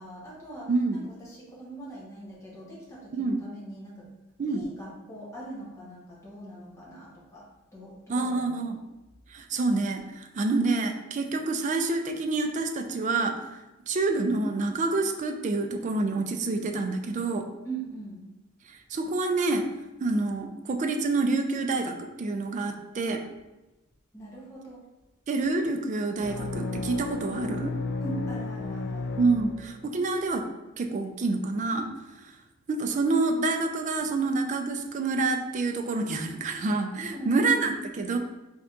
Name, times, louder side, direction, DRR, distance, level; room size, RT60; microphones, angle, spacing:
voice 1, 0.0-4.1 4.4-8.6 17.6-18.2 24.1-24.8 28.0-29.2 37.1-37.6, right 2 dB, 15° left, -6 dB, 1.0 m, -41 dB
voice 2, 0.7-1.0 3.1-3.4 4.4-4.7 8.1-8.8 9.3-13.6 13.9-17.5 18.7-19.7 20.0-23.2 25.3-27.7 29.2-30.4 30.8-31.9 32.2-32.3 32.7-38.2, right 3 dB, 35° right, 5 dB, 0.3 m, -27 dB
sound 1, 26.2-30.1, left 3 dB, 55° left, 0.3 m, -33 dB
4.0 x 3.4 x 2.5 m, 1.0 s
head